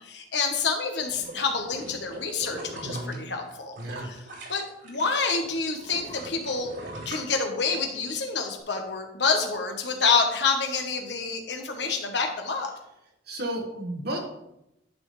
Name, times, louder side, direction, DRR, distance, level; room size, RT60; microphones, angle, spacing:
voice 1, 0.0-4.2 4.5-6.7 7.0-12.7, left 4 dB, 70° left, 4 dB, 1.3 m, -28 dB
sound 1, 1.0-5.1 5.4-8.0 8.4-8.5, right 2 dB, 85° right, 3.3 m, -41 dB
voice 2, 2.8-3.2 3.8-4.1 13.3-14.2, right 1 dB, 60° right, 1 dB, 1.5 m, -32 dB
10.5 x 6.0 x 3.3 m, 0.85 s
head